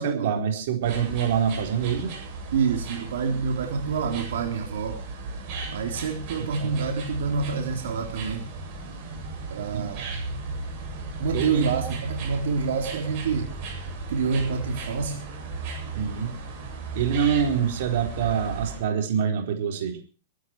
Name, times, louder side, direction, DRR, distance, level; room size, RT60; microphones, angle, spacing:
voice 1, 0.0-2.1 6.4-6.8 9.7-9.8 11.3-11.6 15.9-16.4 16.9-20.0, right 8 dB, 50° right, 4 dB, 4.3 m, -26 dB
sound 1, 0.8-18.8, right 3 dB, 35° right, 7.9 m, -35 dB
voice 2, 2.5-5.0 5.7-8.5 9.5-10.1 11.2-13.5 14.1-15.3, right 5 dB, 70° right, 3 dB, 3.5 m, -27 dB
22.5 x 12.5 x 4.7 m, 0.39 s
supercardioid pair, 175°, 0 cm